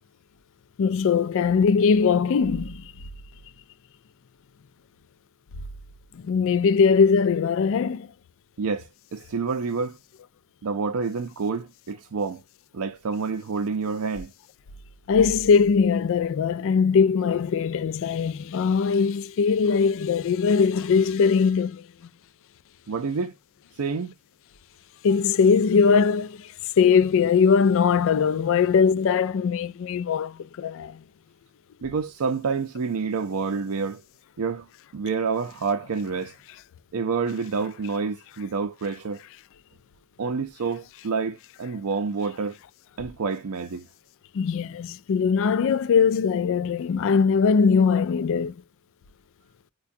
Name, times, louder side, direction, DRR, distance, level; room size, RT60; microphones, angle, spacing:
voice 1, 0.8-2.8 6.3-8.1 15.1-21.8 25.0-26.5 26.8-31.0 44.3-48.5, left 5 dB, 65° left, 0.4 m, -21 dB
voice 2, 8.6-10.0 10.6-12.4 12.7-14.3 22.9-23.3 23.8-24.1 31.8-34.0 34.4-34.7 34.9-36.3 36.9-39.2 40.2-42.6 43.0-43.9, right 5 dB, 75° right, 0.5 m, -28 dB
4.7 x 2.2 x 2.5 m
head